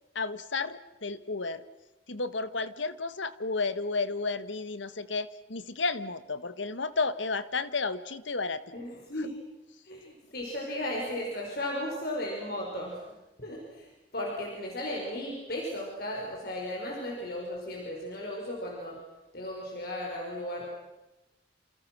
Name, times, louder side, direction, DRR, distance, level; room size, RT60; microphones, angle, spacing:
voice 1, 0.1-1.6 2.1-8.6 9.2-9.3, left 3 dB, 80° left, 13 dB, 1.5 m, -32 dB
voice 2, 8.7-9.3 9.8-19.0 19.3-20.6, left 1 dB, 55° left, -1 dB, 5.6 m, -35 dB
28.5 x 28.5 x 6.3 m, 1.0 s
head